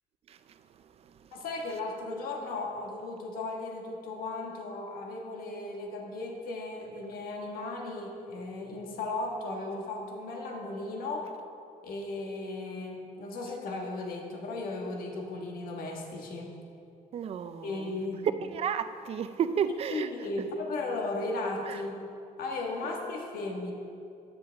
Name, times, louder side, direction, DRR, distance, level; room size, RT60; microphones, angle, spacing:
voice 1, 0.3-1.3 17.1-17.9 18.5-20.1 21.7-21.8, right 7 dB, 45° right, 0.4 m, -33 dB
voice 2, 1.3-11.3 11.8-16.5 17.6-18.3 19.9-22.0 22.4-23.7, left 2 dB, 85° left, 1.5 m, -36 dB
12.0 x 9.7 x 3.4 m
cardioid pair, 170°, 15 cm